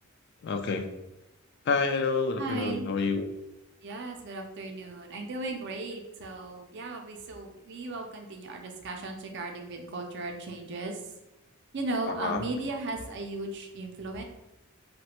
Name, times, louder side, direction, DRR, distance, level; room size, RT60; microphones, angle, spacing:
voice 1, 0.4-0.9 1.7-3.3 12.1-12.4, left 4 dB, 55° left, 6 dB, 0.3 m, -28 dB
voice 2, 2.4-2.9 3.8-11.0 11.7-14.2, right 2 dB, 55° right, 3 dB, 0.5 m, -36 dB
3.2 x 2.1 x 2.9 m, 0.96 s
head